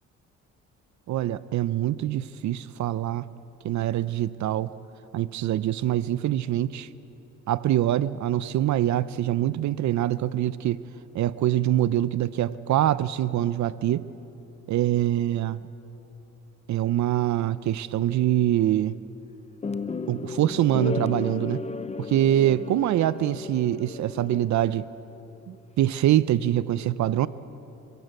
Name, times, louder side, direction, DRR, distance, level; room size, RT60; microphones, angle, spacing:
voice 1, 1.1-3.3 3.6-4.7 5.1-6.9 7.5-10.8 11.1-14.1 14.7-15.6 16.7-19.0 20.1-21.6 22.0-24.9 25.5-27.3, right 12 dB, 70° right, 16 dB, 0.6 m, -24 dB
sound 1, 19.6-24.7, left 4 dB, 20° left, 0.7 m, -34 dB
27.0 x 16.5 x 8.2 m, 3.0 s
cardioid pair, 90°, 30 cm